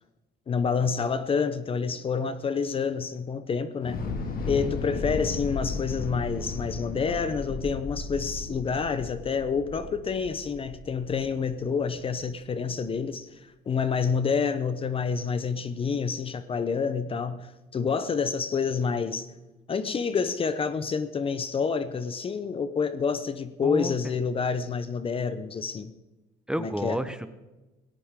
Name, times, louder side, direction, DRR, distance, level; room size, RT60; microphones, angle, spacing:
voice 1, 0.5-4.0 4.5-13.4 13.7-19.3 19.7-25.9 26.6-27.0, left 5 dB, 35° left, 0.8 m, -28 dB
Thunder / Explosion, 3.8-12.0, left 3 dB, 60° left, 2.2 m, -35 dB
voice 2, 23.6-24.1 26.5-27.3, right 1 dB, 5° right, 1.0 m, -31 dB
18.5 x 17.0 x 3.7 m
cardioid pair, 110°, 17 cm